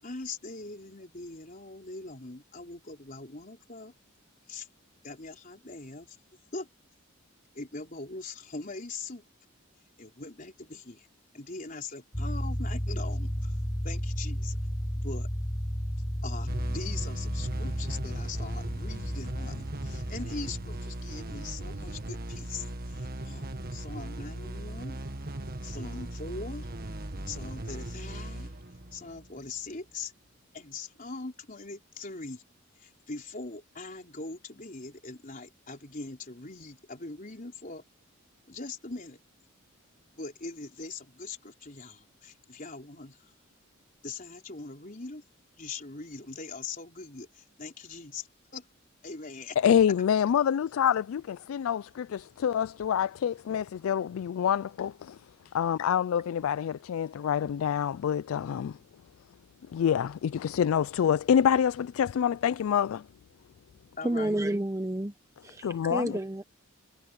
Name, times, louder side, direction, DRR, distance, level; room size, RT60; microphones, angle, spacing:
voice 1, 0.0-3.9 4.5-4.7 5.0-6.2 6.5-6.7 7.5-9.2 10.0-11.1 11.3-13.6 13.8-14.6 15.0-15.3 16.2-22.6 22.9-25.0 25.6-26.7 27.3-28.5 28.9-30.1 30.5-32.4 32.8-37.8 38.5-39.2 40.1-43.2 44.0-45.2 45.6-48.3 48.5-48.7 49.0-49.6 64.0-64.4, left 3 dB, 40° left, 4.2 m, -41 dB
sound 1, 12.1-20.8, equal, 20° left, 4.6 m, -33 dB
sound 2, 16.5-29.8, right 1 dB, 45° right, 1.6 m, -38 dB
voice 2, 49.6-55.2 55.5-58.8 59.7-63.1 65.6-66.2, left 8 dB, 80° left, 0.3 m, -26 dB
voice 3, 64.0-65.1 65.4-66.4, right 1 dB, 15° right, 0.7 m, -30 dB
head